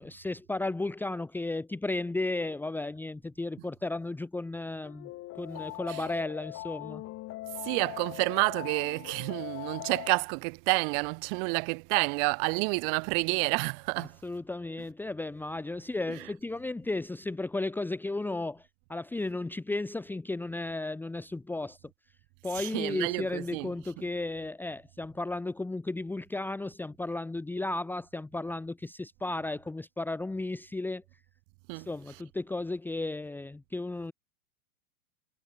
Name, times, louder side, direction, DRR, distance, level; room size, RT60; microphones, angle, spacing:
voice 1, 0.0-7.0 14.2-21.8 22.4-31.0 31.7-34.1, left 2 dB, 5° left, 1.5 m, -34 dB
sound 1, 4.8-10.2, left 17 dB, 30° left, 3.2 m, -41 dB
voice 2, 7.6-14.2 16.1-16.3 22.5-23.7 24.0-24.1 31.7-31.9, right 40 dB or more, 35° right, 1.1 m, -29 dB
hypercardioid pair, 140°, 45 cm